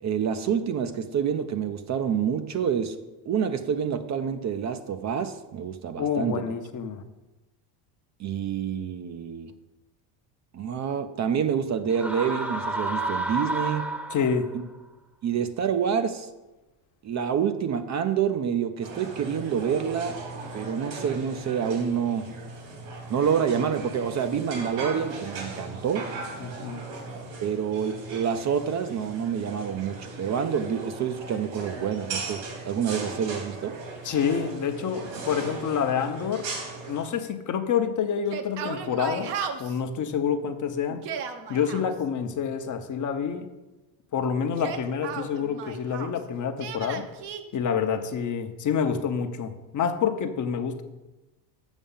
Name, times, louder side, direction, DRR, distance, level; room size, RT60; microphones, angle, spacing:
voice 1, 0.0-3.0 3.3-6.3 8.2-9.5 10.5-13.9 15.2-16.3 17.0-20.2 20.5-22.3 23.1-26.1 27.4-33.8, right 7 dB, 35° right, 9 dB, 0.6 m, -27 dB
voice 2, 6.0-7.0 14.1-14.5 26.4-26.8 34.0-36.5 36.9-39.3 39.6-41.0 41.5-43.4 44.1-47.1 47.5-50.8, left 7 dB, 40° left, 7 dB, 0.9 m, -27 dB
sound 1, 11.9-14.5, right 2 dB, 5° right, 0.9 m, -30 dB
sound 2, 18.8-37.1, right 3 dB, 75° right, 3.2 m, -38 dB
Yell, 38.2-39.8 40.9-41.8 44.4-46.2 46.6-47.4, right 6 dB, 55° right, 1.0 m, -35 dB
7.2 x 6.2 x 5.5 m, 1.1 s
supercardioid pair, 100°, 49 cm